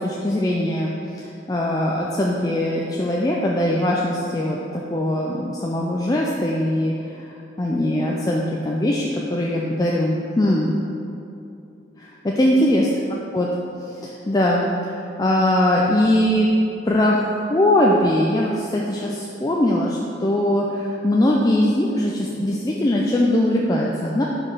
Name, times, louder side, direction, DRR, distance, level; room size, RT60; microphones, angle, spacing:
voice 1, 0.0-7.3 7.6-10.8 12.0-12.9 13.3-13.5 13.9-16.5 16.8-17.2 17.5-24.2, left 1 dB, 20° left, -3 dB, 0.3 m, -21 dB
4.9 x 4.5 x 5.5 m, 2.7 s
head